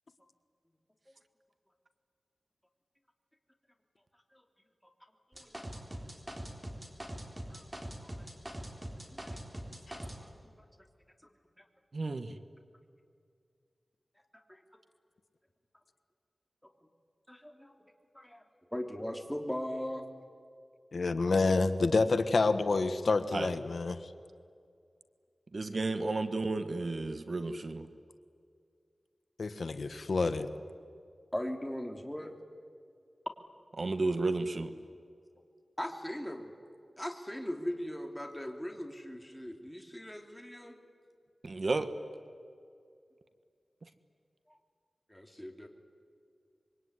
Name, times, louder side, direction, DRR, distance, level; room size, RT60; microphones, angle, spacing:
sound 1, 5.3-10.2, right 1 dB, 20° right, 4.0 m, -42 dB
voice 1, 7.5-8.3 9.1-9.4 9.6-10.3 10.6-10.7 11.6-11.7 14.5-14.6 17.3-17.7 18.1-18.4 18.7-20.1 29.5-29.6 31.3-32.3 35.8-36.5 37.0-40.8 44.5-44.6 45.1-45.7, equal, 5° left, 3 dB, 3.1 m, -40 dB
voice 2, 11.9-12.3 23.3-23.5 25.5-27.9 33.8-34.7 41.4-41.9, right 3 dB, 55° right, 9 dB, 1.5 m, -32 dB
voice 3, 20.9-24.0 29.4-30.5, left 3 dB, 70° left, 10 dB, 1.4 m, -28 dB
25.5 x 23.5 x 9.8 m, 2.3 s
wide cardioid pair, 95°, 0 cm